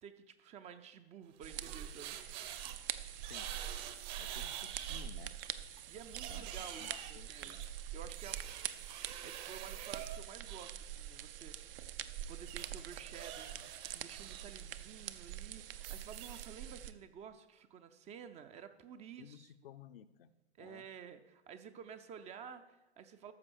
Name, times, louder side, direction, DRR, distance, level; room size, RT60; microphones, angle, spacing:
voice 1, 0.0-2.2 5.9-7.6 7.9-8.4 8.9-11.6 12.3-19.5 20.6-23.3, right 7 dB, 20° right, 10 dB, 0.5 m, -52 dB
sound 1, 1.3-2.8 3.2-5.1 5.4-10.7 12.5-14.5 14.8-15.1 15.7-16.5, right 10 dB, 40° right, 1.1 m, -47 dB
sound 2, 1.4-16.9, right 10 dB, 55° right, 0.7 m, -45 dB
voice 2, 4.2-5.3 6.3-7.6 19.2-20.3 20.6-20.9, left 10 dB, 55° left, 11 dB, 0.7 m, -55 dB
13.5 x 5.4 x 6.2 m, 1.0 s
figure-of-eight pair, 100°, 34 cm